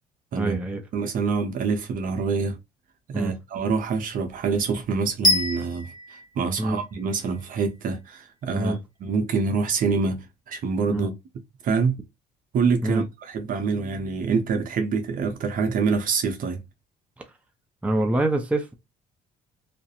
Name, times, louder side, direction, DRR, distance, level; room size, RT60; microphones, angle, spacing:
voice 1, 0.4-0.8 3.1-3.3 6.6-6.8 8.5-8.8 10.9-11.1 12.8-13.0 17.8-18.7, right 2 dB, 5° right, 0.5 m, -25 dB
voice 2, 0.9-2.6 3.1-5.9 6.4-11.1 11.6-12.0 12.5-16.6, right 5 dB, 55° right, 0.7 m, -26 dB
sound 1, 5.2-7.3, left 1 dB, 25° left, 1.2 m, -25 dB
2.4 x 2.1 x 2.7 m
cardioid pair, 110°, 17 cm